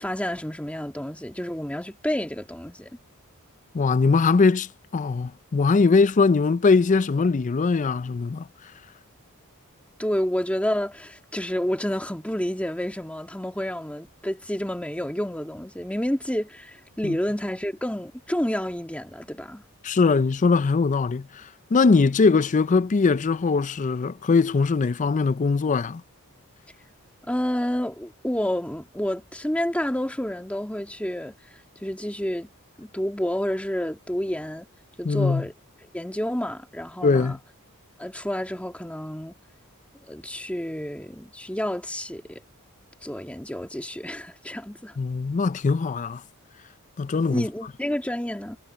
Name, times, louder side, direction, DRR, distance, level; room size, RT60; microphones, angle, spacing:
voice 1, 0.0-3.0 10.0-19.6 27.3-31.4 31.8-32.5 32.8-34.7 35.0-35.5 35.9-37.4 38.0-39.3 40.1-42.4 43.0-45.0 47.3-48.6, equal, 5° left, 2.0 m, -29 dB
voice 2, 3.7-8.5 17.0-17.2 19.8-26.0 35.0-35.4 37.0-37.4 45.0-46.2 47.0-47.5, left 4 dB, 35° left, 0.4 m, -21 dB
head